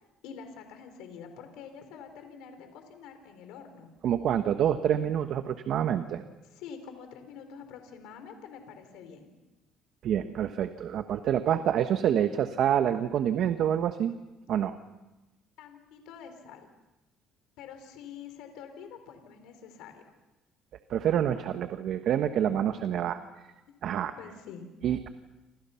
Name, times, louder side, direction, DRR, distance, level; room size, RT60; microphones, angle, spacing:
voice 1, 0.2-3.9 6.5-9.3 15.6-16.6 17.6-20.0 23.0-23.1 24.2-24.7, left 7 dB, 85° left, 7 dB, 4.1 m, -46 dB
voice 2, 4.0-6.2 10.0-14.1 14.5-14.8 20.9-23.2 23.8-24.1 24.8-25.1, right 9 dB, 60° right, 8 dB, 1.3 m, -27 dB
29.5 x 26.5 x 5.9 m, 1.0 s
cardioid pair, 115°, 0 cm